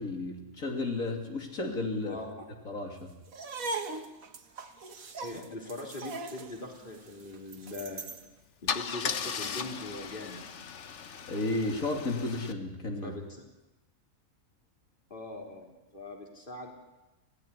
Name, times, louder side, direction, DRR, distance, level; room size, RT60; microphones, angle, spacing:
voice 1, 0.0-2.2 2.7-3.1 11.3-13.2, left 2 dB, 85° left, 2 dB, 3.5 m, -33 dB
voice 2, 2.0-2.5 5.2-8.0 8.6-10.4 13.0-13.4 15.1-16.7, left 2 dB, 40° left, 1 dB, 4.0 m, -41 dB
sound 1, 3.3-8.3, right 3 dB, 85° right, 1.9 m, -40 dB
Car / Engine starting / Idling, 7.9-8.1 8.7-12.5, left 6 dB, 60° left, 1.3 m, -37 dB
26.5 x 17.0 x 10.0 m, 1.0 s
omnidirectional pair, 1.4 m